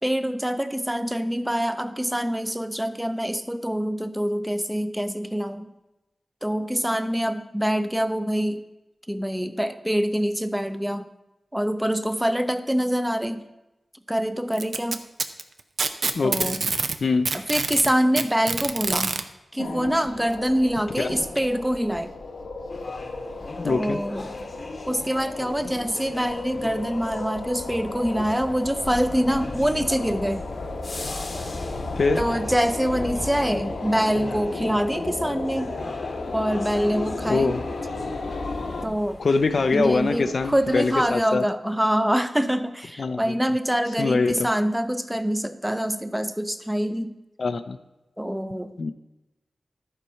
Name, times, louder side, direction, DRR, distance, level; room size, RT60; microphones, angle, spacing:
voice 1, 0.0-5.7 6.4-8.6 9.1-11.1 11.5-13.4 14.1-15.0 16.2-16.6 17.3-19.1 19.5-22.1 23.6-24.3 24.9-30.5 32.2-35.8 36.3-37.6 38.8-39.2 39.7-47.2 48.2-48.7, equal, 10° right, 10 dB, 0.7 m, -25 dB
Packing tape duct tape, 14.5-17.0 17.3-19.2 20.3-20.4 21.0-21.1 21.9-22.0, right 4 dB, 70° right, 0.6 m, -26 dB
voice 2, 16.2-16.5 17.0-17.3 21.0-21.1 23.6-24.0 32.0-32.2 37.3-37.6 39.2-41.4 43.0-43.3 44.0-44.5 47.4-47.8 48.8-48.9, left 4 dB, 70° left, 8 dB, 0.4 m, -23 dB
sound 1, 19.6-38.8, left 3 dB, 90° left, 1.0 m, -34 dB
sound 2, 22.7-41.1, left 2 dB, 50° left, 0.9 m, -40 dB
11.0 x 4.4 x 5.6 m, 0.99 s
cardioid pair, 45°, 0 cm